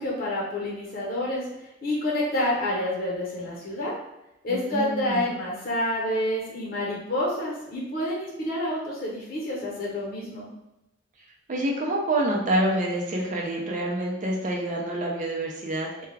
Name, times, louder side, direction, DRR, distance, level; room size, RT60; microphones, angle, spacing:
voice 1, 0.0-1.5 1.8-3.9 4.4-10.5, left 1 dB, 50° left, -4 dB, 0.9 m, -28 dB
voice 2, 4.5-5.2 11.5-16.1, right 1 dB, 40° right, -1 dB, 0.5 m, -27 dB
2.3 x 2.2 x 3.2 m, 0.89 s
head